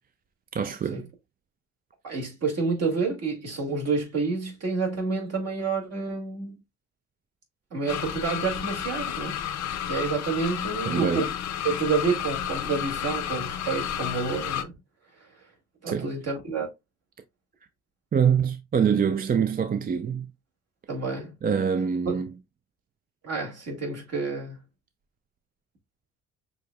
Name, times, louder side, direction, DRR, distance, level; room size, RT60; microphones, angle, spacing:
voice 1, 0.5-1.0 10.9-11.3 15.9-16.1 18.1-20.3 21.4-22.3, right 7 dB, 30° right, 0.4 m, -24 dB
voice 2, 2.0-6.6 7.7-9.4 9.9-11.3 11.6-14.7 15.8-16.7 20.9-21.3 22.1-22.2 23.2-24.6, right 4 dB, 55° right, 2.3 m, -29 dB
sound 1, 7.9-14.6, left 10 dB, 70° left, 0.6 m, -31 dB
6.2 x 2.8 x 2.3 m
cardioid pair, 90°, 30 cm